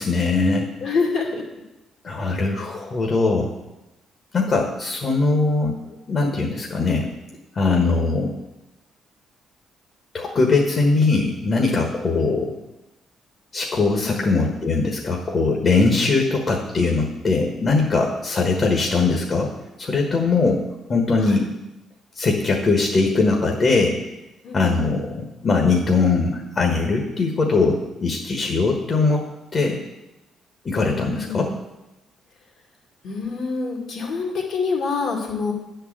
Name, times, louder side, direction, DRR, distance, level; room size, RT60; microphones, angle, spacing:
voice 1, 0.0-0.7 2.0-3.5 4.3-5.8 6.1-7.1 7.5-8.3 10.1-12.5 13.5-19.5 19.8-20.6 20.9-21.4 22.1-24.0 24.5-29.2 29.5-29.8 30.6-31.5, left 3 dB, 45° left, 1 dB, 1.4 m, -21 dB
voice 2, 0.8-1.4 12.1-12.3 14.0-14.2 21.2-21.5 24.4-25.0 30.9-31.5 33.0-35.5, left 4 dB, 70° left, 0 dB, 2.2 m, -26 dB
10.0 x 4.6 x 7.5 m, 0.98 s
cardioid pair, 90°, 0 cm